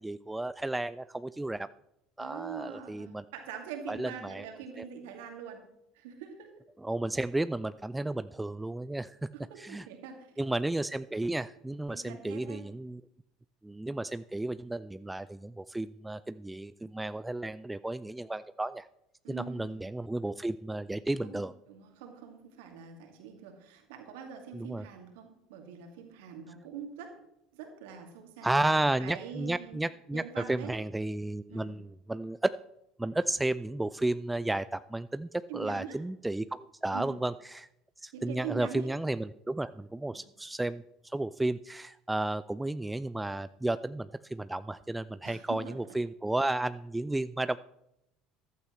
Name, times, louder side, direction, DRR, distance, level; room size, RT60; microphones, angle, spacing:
voice 1, 0.0-1.7 2.2-3.2 3.9-4.4 4.8-4.9 6.8-9.3 9.6-9.9 10.4-13.0 13.6-18.9 19.3-21.5 24.5-24.9 28.4-32.5 33.0-37.7 38.0-47.6, right 2 dB, 10° right, 14 dB, 0.3 m, -33 dB
voice 2, 2.2-5.6 5.9-6.5 9.3-10.3 11.9-12.6 19.2-19.8 21.2-21.4 21.7-27.3 27.5-29.8 30.1-30.7 31.5-31.7 35.5-36.0 36.9-37.1 38.1-38.9 40.1-40.2 45.2-45.8, right 7 dB, 65° right, 4 dB, 2.3 m, -44 dB
14.5 x 12.5 x 3.1 m, 0.81 s
figure-of-eight pair, 65°, 0 cm